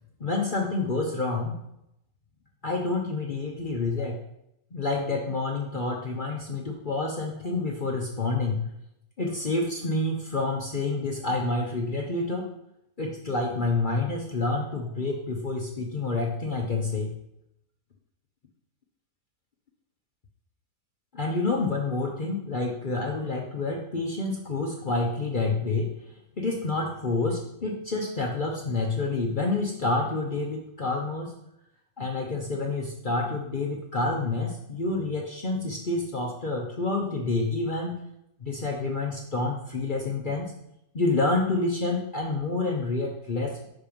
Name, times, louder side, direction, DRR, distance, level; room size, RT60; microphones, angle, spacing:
voice 1, 0.2-1.6 2.6-4.2 4.7-8.6 9.2-12.5 13.0-17.1 21.1-26.0 26.4-31.4 32.0-38.0 38.4-40.5 40.9-43.7, left 3 dB, 40° left, 0 dB, 0.8 m, -28 dB
5.8 x 5.2 x 5.2 m, 0.79 s
omnidirectional pair, 1.6 m